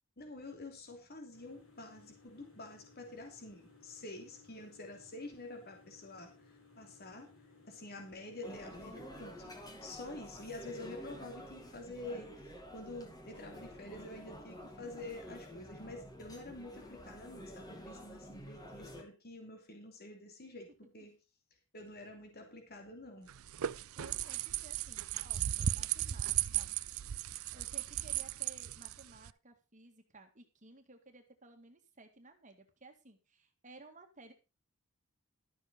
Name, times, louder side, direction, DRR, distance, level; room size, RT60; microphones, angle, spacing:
voice 1, 0.2-7.3 7.7-9.5 9.8-21.1 21.7-23.3, left 2 dB, 45° left, 4 dB, 2.9 m, -48 dB
sound 1, 1.3-9.5, left 3 dB, 70° left, 5.5 m, -62 dB
sound 2, 8.4-19.0, equal, 20° left, 2.1 m, -50 dB
sound 3, 23.3-29.3, right 11 dB, 75° right, 0.5 m, -36 dB
voice 2, 23.9-26.8 27.5-34.3, right 3 dB, 35° right, 5 dB, 1.9 m, -57 dB
12.5 x 7.5 x 5.1 m, 0.29 s
head